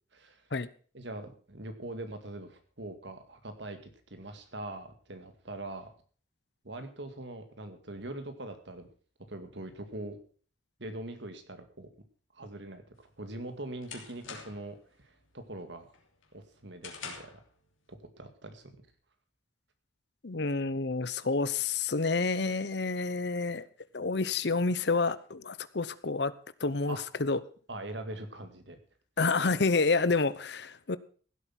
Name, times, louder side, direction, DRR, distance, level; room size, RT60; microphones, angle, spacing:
voice 1, 0.1-0.4 0.9-5.9 6.6-8.9 9.3-10.2 10.8-11.9 12.3-15.9 16.3-17.4 17.9-18.8 26.9-27.0 27.7-28.8, right 1 dB, 65° right, 7 dB, 2.1 m, -42 dB
sound 1, 13.0-14.8 15.2-15.5 15.9-17.5, left 6 dB, 85° left, 3.1 m, -45 dB
voice 2, 20.2-23.6 23.9-26.3 26.6-27.4 29.2-31.0, left 3 dB, 55° left, 16 dB, 0.8 m, -29 dB
16.0 x 8.1 x 5.9 m, 0.42 s
head